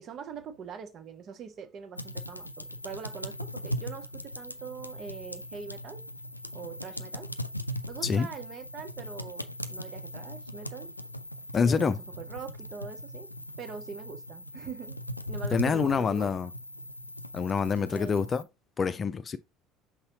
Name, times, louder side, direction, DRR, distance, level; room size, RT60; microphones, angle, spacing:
voice 1, 0.0-6.0 6.5-7.3 7.9-10.9 11.6-13.3 13.6-15.0 15.3-16.3 17.9-18.1, right 6 dB, 45° right, 1.2 m, -43 dB
sound 1, 2.0-18.4, left 1 dB, 90° left, 0.3 m, -39 dB
voice 2, 11.5-12.0 15.5-16.5 17.3-18.4 18.8-19.4, left 5 dB, 30° left, 0.5 m, -26 dB
6.5 x 5.6 x 2.7 m
figure-of-eight pair, 65°, 0 cm